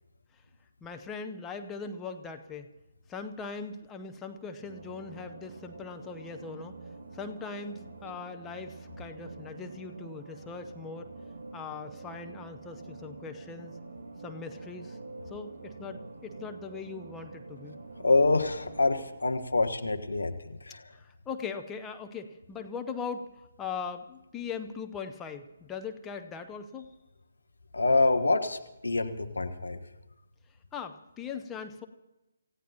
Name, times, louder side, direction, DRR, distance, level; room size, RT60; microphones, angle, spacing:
voice 1, 0.8-2.7 3.1-6.7 7.1-11.1 11.5-13.7 14.2-15.0 15.3-17.8 20.9-26.9 30.7-31.9, left 5 dB, 10° left, 5 dB, 0.8 m, -40 dB
sound 1, 4.6-19.1, right 3 dB, 45° right, 6.7 m, -46 dB
voice 2, 18.0-20.3 20.7-20.8 27.7-28.6 28.8-29.8, left 3 dB, 70° left, 7 dB, 1.3 m, -26 dB
27.5 x 15.5 x 2.9 m, 1.0 s
figure-of-eight pair, 140°, 0 cm